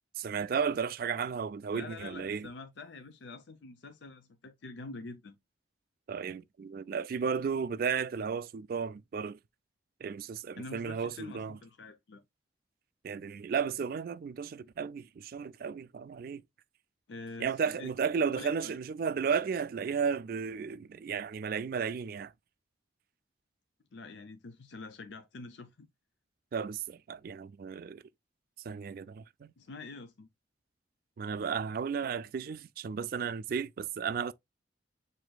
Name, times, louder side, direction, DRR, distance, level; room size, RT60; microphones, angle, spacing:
voice 1, 0.2-2.5 6.1-9.4 10.0-11.6 13.0-16.4 17.4-22.3 26.5-28.0 28.6-29.5 31.2-34.3, right 6 dB, 50° right, 0.3 m, -34 dB
voice 2, 1.7-5.3 10.6-12.2 17.1-17.9 18.3-18.8 23.9-25.9 29.6-30.3, left 3 dB, 70° left, 0.5 m, -46 dB
7.8 x 2.6 x 2.2 m
head